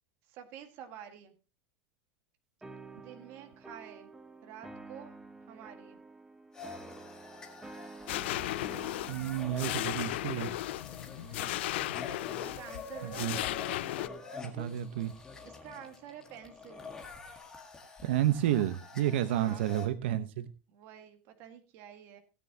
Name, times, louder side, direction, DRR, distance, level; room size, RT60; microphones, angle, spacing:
voice 1, 0.3-1.3 2.9-4.1 4.4-5.2 5.5-6.0 11.2-11.6 12.4-13.7 15.4-16.9 19.3-19.6 20.7-22.2, right 9 dB, 40° right, 1.8 m, -49 dB
sound 1, 2.6-10.4, right 3 dB, 5° right, 0.8 m, -50 dB
sound 2, 6.5-19.9, left 4 dB, 10° left, 1.8 m, -47 dB
sound 3, 8.1-14.1, left 16 dB, 75° left, 0.5 m, -36 dB
voice 2, 9.1-10.5 13.0-13.4 14.4-15.1 18.0-20.5, right 12 dB, 80° right, 1.0 m, -30 dB
17.5 x 9.5 x 2.9 m
supercardioid pair, 175°, 6 cm